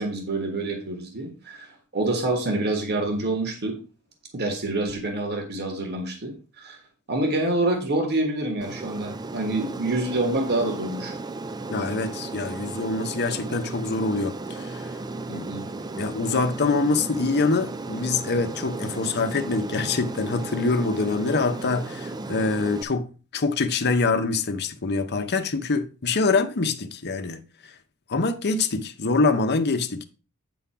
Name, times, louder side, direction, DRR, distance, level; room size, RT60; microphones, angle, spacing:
voice 1, 0.0-3.7 4.3-6.8 7.1-11.1 15.3-15.6 15.9-16.0, right 2 dB, 45° right, 1.5 m, -27 dB
Aircraft, 8.6-22.8, right 3 dB, 20° right, 0.4 m, -35 dB
voice 2, 11.7-14.9 15.3-15.5 15.9-27.4 28.1-30.0, left 3 dB, 50° left, 0.9 m, -25 dB
9.3 x 3.8 x 5.7 m
head